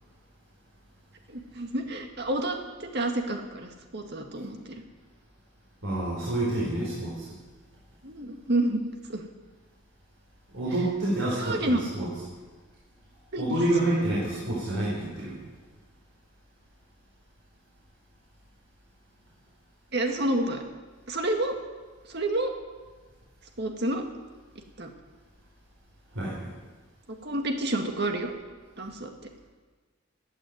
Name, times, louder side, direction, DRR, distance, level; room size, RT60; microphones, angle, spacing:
voice 1, 1.3-4.8 8.0-8.8 9.1-9.2 11.4-11.9 13.3-13.5 19.9-20.6 21.1-21.6 22.1-22.5 23.6-24.0 24.8-24.9 27.1-28.3 28.8-29.1, right 1 dB, 55° right, 4 dB, 1.9 m, -29 dB
voice 2, 5.8-7.3 10.5-12.1 13.4-15.4 26.1-26.5, right 1 dB, 85° right, -6 dB, 4.5 m, -28 dB
15.5 x 8.8 x 9.4 m, 1.3 s
head